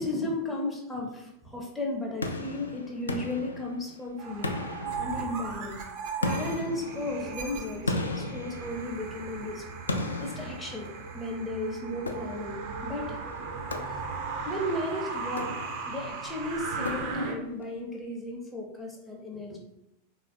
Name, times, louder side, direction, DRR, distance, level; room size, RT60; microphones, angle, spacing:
voice 1, 0.0-4.6 5.0-5.8 6.2-9.6 10.2-10.9 11.1-12.6 12.8-14.1 14.5-15.6 15.9-19.6, left 1 dB, 5° left, -2 dB, 0.5 m, -35 dB
sound 1, 2.2-4.0 4.4-5.6 6.2-9.2 9.9-11.3 12.1-12.7 13.7-14.4 15.2-16.0 16.8-17.5, left 2 dB, 75° left, 0.3 m, -35 dB
sound 2, 4.2-17.3, right 4 dB, 45° right, 0.4 m, -37 dB
3.3 x 2.4 x 2.5 m, 0.88 s
figure-of-eight pair, 90°, 0 cm